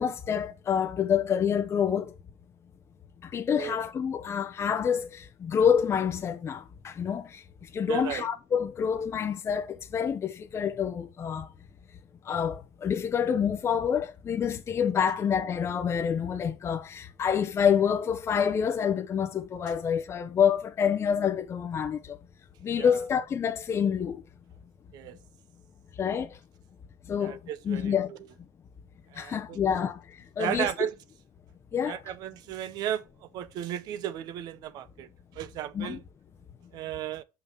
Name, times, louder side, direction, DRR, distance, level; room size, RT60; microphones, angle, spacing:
voice 1, 0.0-2.1 3.2-11.5 12.2-22.2 22.6-24.2 26.0-26.4 27.1-27.4 27.6-28.1 29.2-30.7 31.7-32.0 35.7-36.0, left 7 dB, 35° left, 0.8 m, -27 dB
voice 2, 7.9-8.3 22.8-23.0 24.9-25.2 27.2-27.9 29.1-29.6 30.4-30.9 31.9-35.1 35.4-36.0 36.7-37.2, right 11 dB, 60° right, 0.7 m, -34 dB
5.6 x 5.3 x 6.2 m
supercardioid pair, 90°, 8 cm